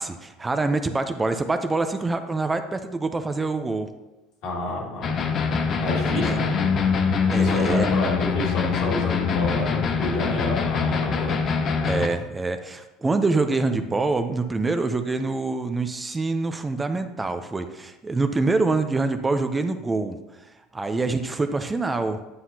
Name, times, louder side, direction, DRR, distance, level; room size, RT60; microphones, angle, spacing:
voice 1, 0.0-3.9 6.2-6.4 7.3-7.9 11.8-20.2 20.7-22.2, right 3 dB, 20° right, 8 dB, 0.6 m, -25 dB
voice 2, 4.4-5.1 5.8-6.5 7.4-11.4, left 1 dB, 70° left, -3 dB, 2.2 m, -29 dB
sound 1, 5.0-12.1, left 5 dB, 45° left, 0.8 m, -23 dB
9.5 x 5.7 x 2.8 m, 1.0 s
hypercardioid pair, 80°, 0 cm